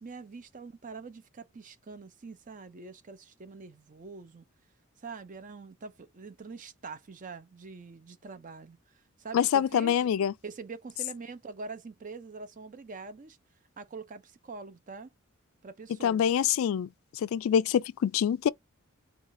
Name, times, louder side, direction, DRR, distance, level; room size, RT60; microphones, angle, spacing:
voice 1, 0.0-4.4 5.0-10.0 10.4-13.4 13.8-15.1 15.6-16.3, right 4 dB, 35° right, 0.5 m, -44 dB
voice 2, 9.3-10.3 16.0-18.5, left 8 dB, 70° left, 0.3 m, -26 dB
4.8 x 2.4 x 3.7 m
head